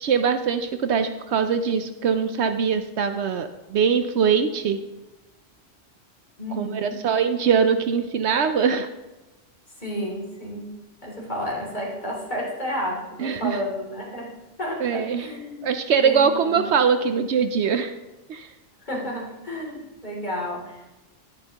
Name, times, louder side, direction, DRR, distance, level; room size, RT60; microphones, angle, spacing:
voice 1, 0.0-4.8 6.6-8.9 13.2-13.6 14.8-15.3 15.6-17.9 18.3-18.5, right 6 dB, 70° right, 9 dB, 0.9 m, -22 dB
voice 2, 6.4-6.9 9.8-10.8 11.0-15.7 16.0-16.6 18.8-21.0, equal, 35° left, -4 dB, 3.1 m, -31 dB
11.0 x 10.5 x 2.9 m, 1.1 s
omnidirectional pair, 1.3 m